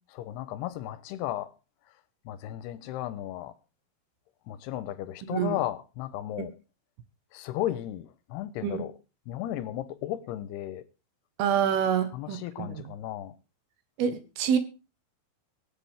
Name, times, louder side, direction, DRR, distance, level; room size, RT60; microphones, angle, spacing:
voice 1, 0.1-1.5 2.3-3.5 4.5-6.5 7.3-8.9 9.3-10.8 12.1-13.4, left 13 dB, 90° left, 2.9 m, -34 dB
voice 2, 5.2-5.6 8.6-8.8 11.4-12.8 14.0-14.6, right 8 dB, 75° right, 3.0 m, -27 dB
22.5 x 7.7 x 3.6 m
omnidirectional pair, 4.6 m